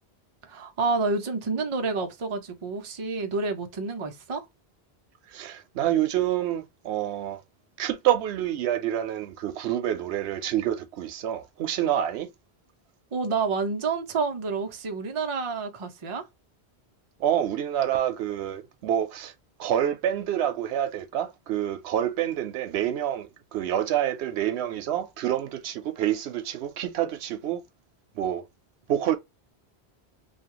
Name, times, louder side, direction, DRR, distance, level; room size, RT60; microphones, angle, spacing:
voice 1, 0.4-4.5 13.1-16.3, right 4 dB, 40° right, 0.5 m, -29 dB
voice 2, 5.3-7.4 7.8-12.3 17.2-19.3 19.6-27.6 28.1-28.4 28.9-29.2, right 11 dB, 85° right, 0.9 m, -27 dB
2.8 x 2.2 x 2.9 m
omnidirectional pair, 1.1 m